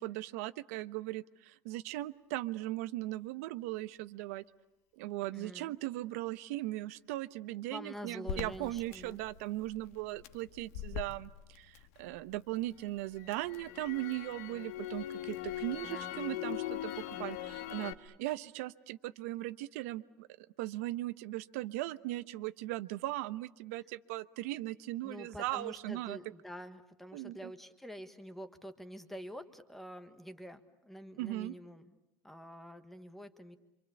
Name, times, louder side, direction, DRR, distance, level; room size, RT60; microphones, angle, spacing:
voice 1, 0.0-4.4 4.9-16.9 17.2-26.2 27.1-27.5 31.2-31.5, right 17 dB, 85° right, 13 dB, 1.0 m, -38 dB
voice 2, 5.3-5.7 7.7-9.2 15.8-16.1 25.0-32.0 32.2-33.6, equal, 5° left, 9 dB, 1.4 m, -47 dB
Crackle, 8.3-12.4 12.8-17.9, left 12 dB, 85° left, 1.7 m, -41 dB
27.0 x 26.5 x 8.4 m, 0.88 s
cardioid pair, 175°, 8 cm